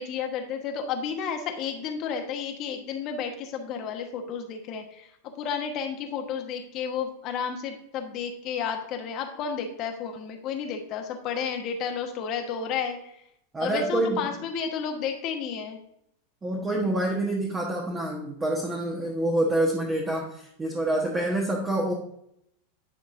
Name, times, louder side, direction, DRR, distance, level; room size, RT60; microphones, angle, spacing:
voice 1, 0.0-5.1 5.4-13.1 13.6-15.8, left 6 dB, 40° left, 4 dB, 1.0 m, -32 dB
voice 2, 13.5-14.3 16.4-21.9, right 1 dB, 20° right, -1 dB, 1.2 m, -27 dB
10.0 x 4.3 x 2.6 m, 0.75 s
figure-of-eight pair, 90°, 0 cm